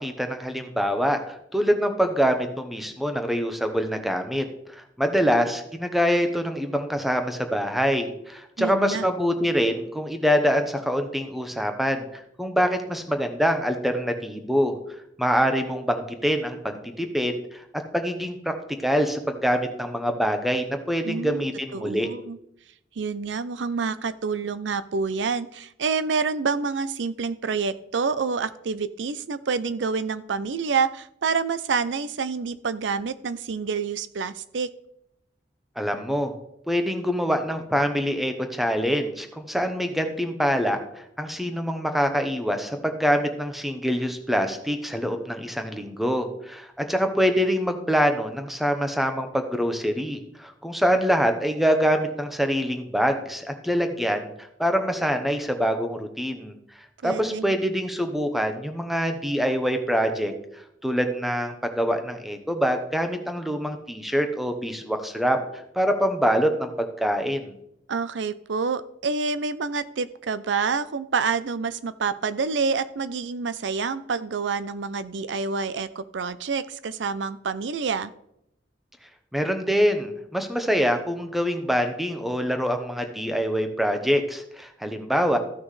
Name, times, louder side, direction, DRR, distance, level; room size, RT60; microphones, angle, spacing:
voice 1, 0.0-4.4 4.7-12.1 12.4-14.7 15.2-17.6 17.9-18.5 18.8-22.1 35.8-36.3 36.7-54.3 54.6-56.5 57.0-60.3 60.8-65.4 65.7-67.5 79.3-85.4, equal, ahead, 6 dB, 0.9 m, -25 dB
voice 2, 8.6-9.0 21.0-21.5 21.7-22.4 23.0-34.7 57.0-57.5 67.9-78.1, right 5 dB, 75° right, 15 dB, 0.5 m, -27 dB
14.0 x 6.2 x 3.2 m, 0.76 s
head